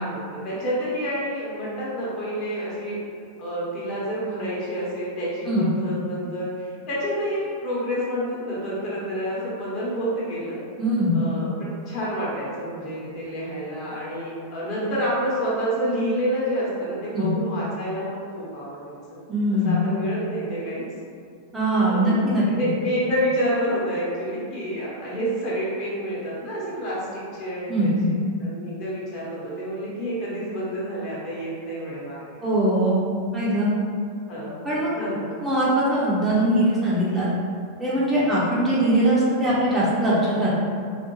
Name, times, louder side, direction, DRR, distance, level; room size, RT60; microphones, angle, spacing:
voice 1, 0.0-3.0 3.4-10.6 11.1-19.2 19.6-20.8 21.9-32.2 34.3-34.6 35.0-35.3, equal, 40° left, -7 dB, 0.9 m, -28 dB
voice 2, 10.8-11.2 17.1-17.3 19.3-19.8 21.5-22.4 27.7-28.1 32.4-33.0 33.3-33.7 34.6-34.9 35.4-37.3 37.8-40.5, right 1 dB, 15° right, -8 dB, 0.6 m, -21 dB
2.4 x 2.1 x 2.9 m, 2.3 s
figure-of-eight pair, 90°, 0 cm